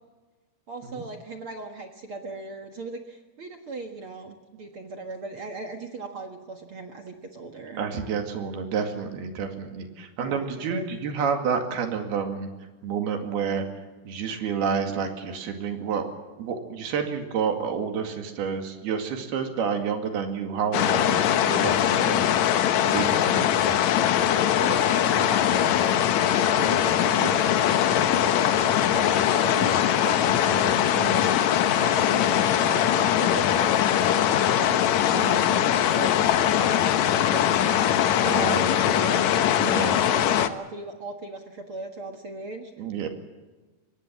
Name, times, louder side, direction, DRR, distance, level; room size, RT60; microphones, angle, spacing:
voice 1, 0.7-7.8 10.2-10.8 23.6-23.8 24.5-27.6 28.1-30.6 30.9-42.7, right 3 dB, 55° right, 4 dB, 1.6 m, -38 dB
voice 2, 7.8-12.5 12.8-13.6 14.1-16.1 16.4-22.2 22.8-23.7 27.1-27.3 30.3-31.2 35.1-35.4 38.2-38.7 39.6-40.0 42.8-43.1, right 6 dB, 75° right, 5 dB, 4.2 m, -29 dB
sound 1, 20.7-40.5, left 10 dB, 70° left, 1.7 m, -21 dB
24.5 x 20.5 x 7.5 m, 1.2 s
omnidirectional pair, 4.6 m